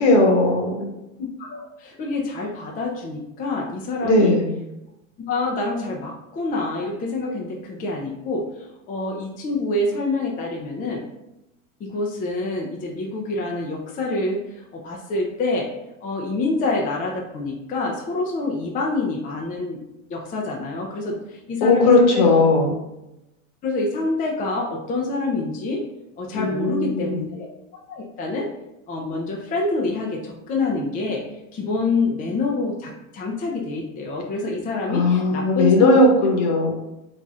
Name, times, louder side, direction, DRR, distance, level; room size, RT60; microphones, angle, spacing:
voice 1, 0.0-0.9 4.0-4.5 21.6-22.7 26.3-27.2 34.9-36.7, left 2 dB, 65° left, 1 dB, 1.2 m, -17 dB
voice 2, 1.2-4.3 5.2-8.4 8.9-11.0 11.8-15.7 16.0-19.8 20.1-22.4 23.6-25.8 26.2-27.5 27.9-28.5 28.9-31.2 31.5-35.9, left 3 dB, 20° left, -1 dB, 0.5 m, -26 dB
4.0 x 3.0 x 2.4 m, 0.90 s
supercardioid pair, 115°, 40 cm